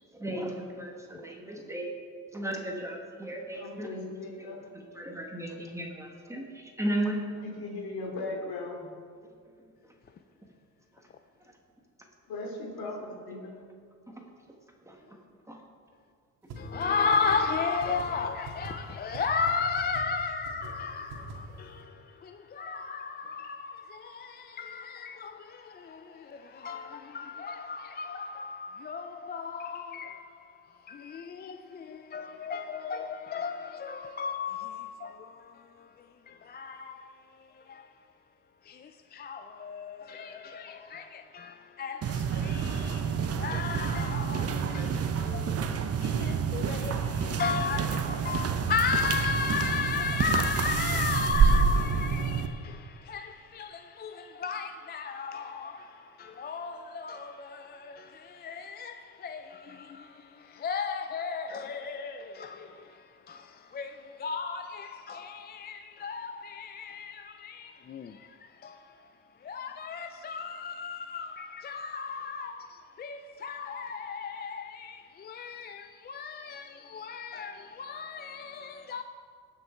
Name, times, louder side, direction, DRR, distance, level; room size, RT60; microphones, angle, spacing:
voice 1, 0.1-1.9 2.3-3.9 4.4-7.2 9.6-9.9 10.9-11.0 11.4-11.5 14.1-14.3 14.8-15.2 15.4-15.6, right 1 dB, 10° right, 1.5 m, -36 dB
voice 2, 3.5-4.6 7.4-8.9 12.3-13.6, left 2 dB, 65° left, 2.9 m, -38 dB
sound 1, 16.5-16.6 16.8-16.9 17.1-17.4 17.8-18.0 18.4-18.7 19.1-19.2 19.5-19.6 19.8-20.0 20.4-20.7 21.1-21.3, right 5 dB, 80° right, 2.2 m, -41 dB
voice 3, 16.6-38.1 38.6-79.0, left 5 dB, 25° left, 0.4 m, -35 dB
sound 2, 42.0-52.5, right 6 dB, 40° right, 0.8 m, -28 dB
18.0 x 6.4 x 4.4 m
cardioid pair, 110°, 38 cm